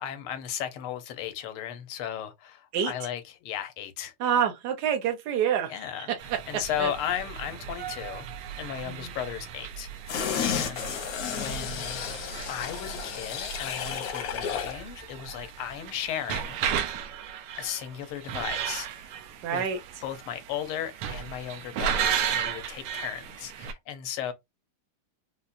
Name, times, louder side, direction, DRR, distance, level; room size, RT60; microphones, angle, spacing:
voice 1, 0.0-4.1 5.7-6.1 6.5-8.3 8.6-9.9 10.4-12.0 12.5-16.6 17.6-19.2 19.5-19.6 20.0-24.3, left 10 dB, 90° left, 1.6 m, -35 dB
voice 2, 4.2-6.9 8.9-9.1 19.4-19.8, right 8 dB, 70° right, 0.9 m, -28 dB
sound 1, 6.2-23.7, right 8 dB, 90° right, 1.6 m, -35 dB
sound 2, 10.1-14.8 15.2-15.3, left 7 dB, 70° left, 0.8 m, -32 dB
5.4 x 2.0 x 2.4 m
omnidirectional pair, 2.4 m